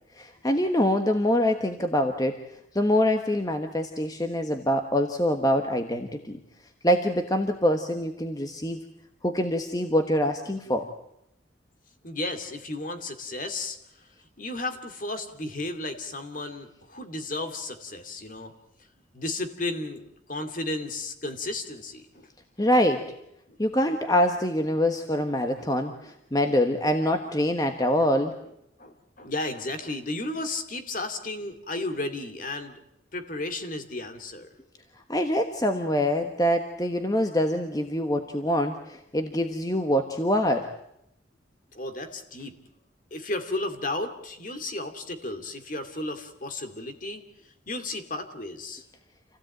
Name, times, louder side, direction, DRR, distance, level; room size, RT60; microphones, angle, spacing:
voice 1, 0.2-2.4 2.7-6.4 6.8-8.8 9.2-10.9 22.6-23.1 23.6-28.3 35.1-40.7, left 1 dB, 20° left, 6 dB, 1.2 m, -25 dB
voice 2, 12.0-13.8 14.4-18.5 19.1-22.3 22.6-22.7 25.2-25.3 25.6-25.7 26.0-26.1 28.8-32.8 33.1-34.5 41.7-42.5 43.1-47.3 47.7-48.8, left 2 dB, 45° left, 8 dB, 2.4 m, -34 dB
27.5 x 16.0 x 8.9 m, 0.80 s
head